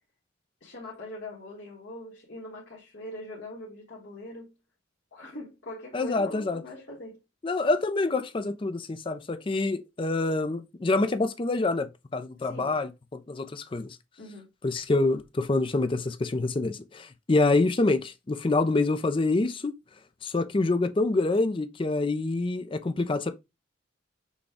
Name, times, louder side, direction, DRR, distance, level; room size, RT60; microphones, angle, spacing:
voice 1, 0.6-4.5 5.1-7.2 12.4-12.8 14.2-14.5, left 1 dB, 65° left, 1.4 m, -42 dB
voice 2, 5.9-6.6 7.4-14.0 14.6-19.7 20.2-23.3, left 2 dB, 25° left, 0.4 m, -26 dB
6.1 x 2.2 x 3.5 m
head